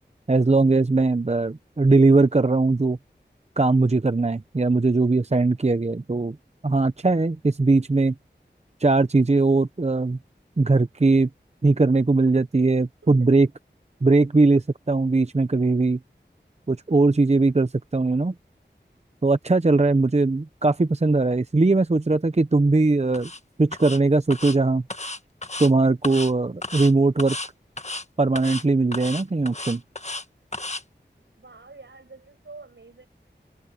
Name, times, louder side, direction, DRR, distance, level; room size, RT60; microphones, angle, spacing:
voice 1, 0.3-3.0 3.6-6.4 6.6-8.1 8.8-10.2 10.6-11.3 11.6-13.5 14.0-16.0 16.7-18.3 19.2-23.3 23.6-24.8 25.6-27.4 28.2-29.8, right 3 dB, 35° right, 0.8 m, -20 dB
voice 2, 13.0-13.4 31.4-33.1, right 3 dB, 90° right, 7.3 m, -46 dB
sound 1, 23.1-23.4 23.7-24.0 24.3-24.6 24.9-25.7 26.0-26.3 26.6-26.9 27.2-27.5 27.8-28.0 28.4-28.6 28.9-30.2 30.5-30.8, left 2 dB, 35° left, 1.5 m, -33 dB
open air
wide cardioid pair, 45°, 19 cm